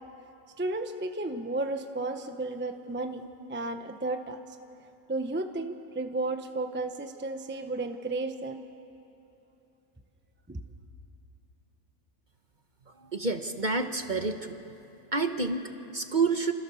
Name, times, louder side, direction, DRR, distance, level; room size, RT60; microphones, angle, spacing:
voice 1, 0.6-4.4 5.1-8.6 10.5-10.6, right 2 dB, 10° right, 6 dB, 0.8 m, -33 dB
voice 2, 13.0-14.6 15.1-16.5, right 4 dB, 35° right, 7 dB, 1.1 m, -29 dB
28.0 x 26.0 x 7.1 m, 3.0 s
omnidirectional pair, 1.5 m